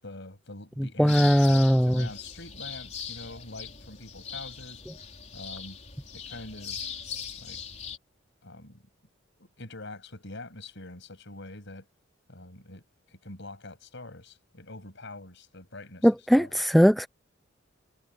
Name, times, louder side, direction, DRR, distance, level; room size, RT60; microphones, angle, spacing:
voice 1, 0.0-4.8 5.3-5.8 6.1-6.9 7.4-7.6 8.4-8.8 9.4-11.9 12.3-16.1 16.3-16.6, left 2 dB, 60° left, 7.3 m, -44 dB
voice 2, 1.0-2.1 16.0-17.1, equal, ahead, 0.5 m, -20 dB
sound 1, 1.1-8.0, left 7 dB, 35° left, 4.1 m, -40 dB
head